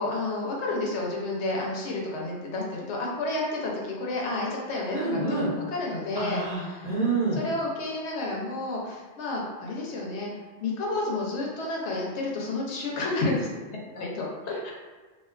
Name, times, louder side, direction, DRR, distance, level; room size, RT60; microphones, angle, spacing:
voice 1, 0.0-6.9 7.4-10.3 10.6-14.7, left 2 dB, 80° left, -2 dB, 0.9 m, -31 dB
voice 2, 4.9-5.5 6.2-7.4, right 3 dB, 25° right, -10 dB, 0.7 m, -27 dB
2.4 x 2.2 x 2.3 m, 1.3 s
omnidirectional pair, 1.2 m